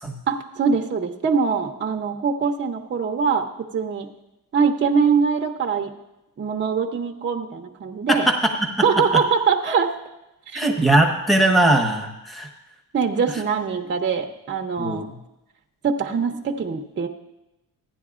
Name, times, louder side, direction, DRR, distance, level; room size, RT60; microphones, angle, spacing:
voice 1, 0.3-3.5 3.7-4.1 4.5-5.9 6.4-8.3 8.8-10.0 10.5-10.7 12.9-15.1 15.8-17.1, right 5 dB, 30° right, 3 dB, 0.6 m, -23 dB
voice 2, 10.5-12.5 14.8-15.0, right 1 dB, ahead, 3 dB, 1.0 m, -19 dB
15.0 x 10.0 x 2.4 m, 0.94 s
cardioid pair, 125°, 37 cm